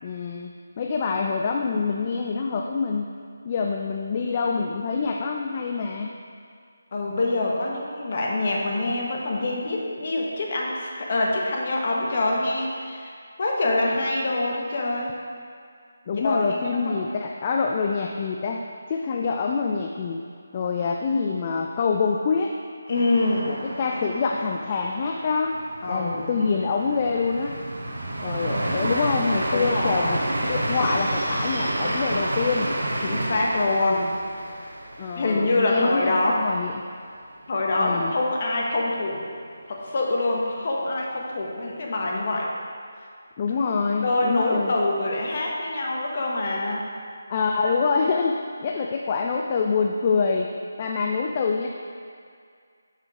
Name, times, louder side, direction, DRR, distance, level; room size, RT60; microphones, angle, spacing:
voice 1, 0.0-3.1 3.4-6.1 16.1-20.2 20.5-22.5 23.5-25.6 25.9-27.6 28.2-32.7 35.0-36.8 37.8-38.1 43.4-44.7 47.3-50.5 50.8-51.7, left 5 dB, 25° left, 1 dB, 0.3 m, -26 dB
voice 2, 6.9-13.1 13.4-15.1 16.1-17.0 22.9-23.5 25.8-26.4 29.5-30.2 33.0-34.2 35.2-36.4 37.5-39.2 39.7-42.5 44.0-46.8, left 2 dB, 40° left, -2 dB, 1.1 m, -25 dB
sound 1, 22.9-36.7 37.0-37.1 37.5-38.0, right 1 dB, 90° right, 0.9 m, -30 dB
5.9 x 5.5 x 4.9 m, 2.2 s
figure-of-eight pair, 170°, 0 cm